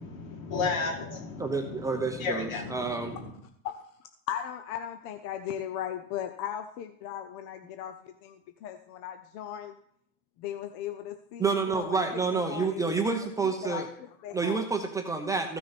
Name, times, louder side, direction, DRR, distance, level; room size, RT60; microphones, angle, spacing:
voice 1, 0.0-3.3, left 4 dB, 65° left, 1 dB, 3.2 m, -34 dB
voice 2, 1.4-3.2 11.4-13.9 14.3-15.6, right 4 dB, 10° right, 3 dB, 0.7 m, -29 dB
voice 3, 4.3-9.8 10.4-11.4 11.7-12.1 12.3-12.9 13.6-14.6, left 10 dB, 35° left, 8 dB, 0.7 m, -37 dB
14.5 x 6.3 x 4.2 m, 0.71 s
supercardioid pair, 135°, 43 cm